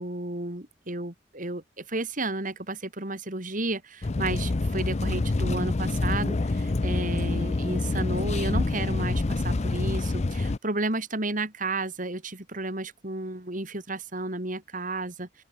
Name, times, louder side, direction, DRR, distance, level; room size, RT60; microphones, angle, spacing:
voice 1, 0.0-15.4, right 2 dB, 45° right, 3.8 m, -32 dB
sound 1, 4.0-10.6, left 2 dB, 40° left, 0.5 m, -27 dB
open air
head